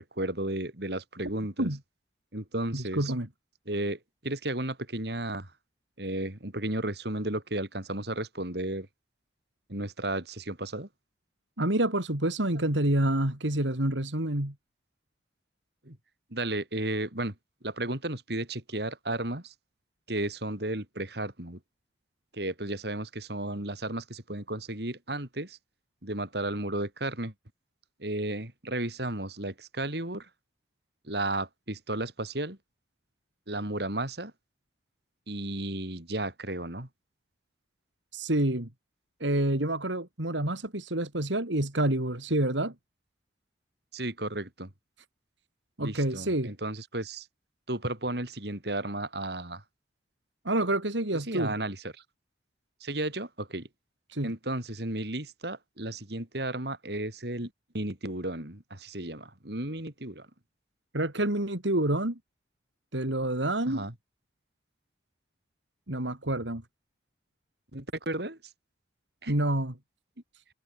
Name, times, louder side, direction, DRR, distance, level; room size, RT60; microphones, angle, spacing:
voice 1, 0.0-1.7 2.3-3.1 3.7-5.5 6.0-8.9 9.7-10.9 15.8-16.0 16.3-17.3 17.6-19.5 20.1-21.6 22.3-25.6 26.0-27.3 28.0-30.3 31.0-32.6 33.5-34.3 35.3-36.9 43.9-44.7 45.8-47.3 47.7-49.6 51.3-51.8 52.8-53.7 54.2-60.3 63.7-63.9 67.7-68.4 69.2-69.4, right 1 dB, 60° right, 3.8 m, -33 dB
voice 2, 2.7-3.3 11.6-14.5 38.1-38.7 39.2-42.7 45.8-46.5 50.5-51.5 54.1-54.3 60.9-62.2 62.9-63.9 65.9-66.6 69.3-69.8, right 1 dB, 85° right, 3.5 m, -28 dB
head